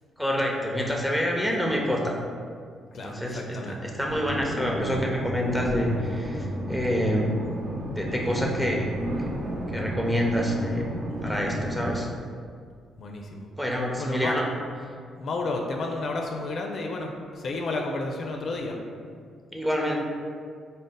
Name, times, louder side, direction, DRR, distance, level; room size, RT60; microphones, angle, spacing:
voice 1, 0.2-2.1 3.0-7.3 8.0-8.9 9.3-9.4 9.7-10.9 11.2-12.1 13.6-14.4 19.5-20.0, equal, ahead, -1 dB, 0.5 m, -27 dB
voice 2, 1.4-1.7 2.9-3.8 11.1-11.4 13.0-13.5 14.0-14.4 15.2-18.8, left 2 dB, 55° left, 1 dB, 0.4 m, -32 dB
sound 1, 4.1-12.0, right 1 dB, 50° right, 0.6 m, -32 dB
3.9 x 2.0 x 3.7 m, 2.1 s
cardioid pair, 90°, 0 cm